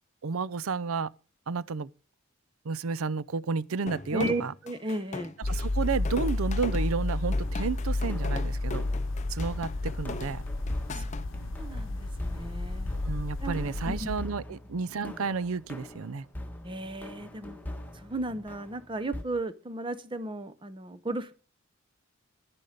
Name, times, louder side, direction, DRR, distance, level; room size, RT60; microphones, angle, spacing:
voice 1, 0.2-1.1 1.5-1.9 2.6-4.5 5.4-8.9 9.3-10.4 13.0-16.2, right 5 dB, 80° right, 0.5 m, -31 dB
sound 1, 3.9-11.3, left 3 dB, 35° left, 0.6 m, -40 dB
voice 2, 4.1-5.3 11.0-11.1 11.6-12.9 13.4-13.6 13.9-14.1 16.6-17.6 18.0-21.3, right 1 dB, 25° right, 0.7 m, -34 dB
sound 2, 5.4-14.2, left 2 dB, 60° left, 0.9 m, -31 dB
sound 3, 7.4-19.2, left 1 dB, 10° left, 1.5 m, -42 dB
11.0 x 10.5 x 5.1 m
head